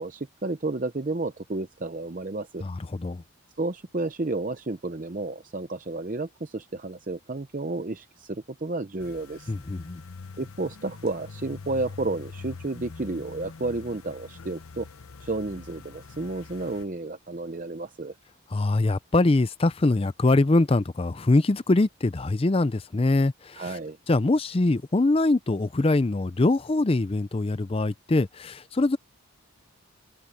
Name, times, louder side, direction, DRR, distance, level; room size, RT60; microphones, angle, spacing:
voice 1, 0.0-2.6 3.6-9.5 10.4-14.9 15.2-18.2 23.5-24.0, right 2 dB, 40° right, 0.7 m, -31 dB
voice 2, 2.6-3.2 9.5-10.0 18.5-23.8 24.1-29.0, left 2 dB, 25° left, 0.5 m, -23 dB
sound 1, 9.0-16.8, left 4 dB, 85° left, 0.8 m, -44 dB
open air
head